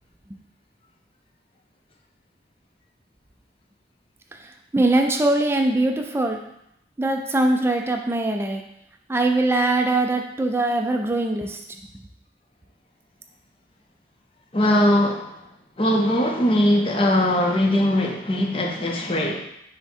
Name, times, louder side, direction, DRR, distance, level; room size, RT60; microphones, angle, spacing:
voice 1, 4.7-6.4 7.0-8.6 9.1-11.6, right 2 dB, 15° right, 3 dB, 0.3 m, -21 dB
voice 2, 14.5-15.3 15.8-19.4, left 1 dB, 30° left, 1 dB, 0.6 m, -20 dB
5.7 x 2.1 x 4.4 m, 0.78 s
head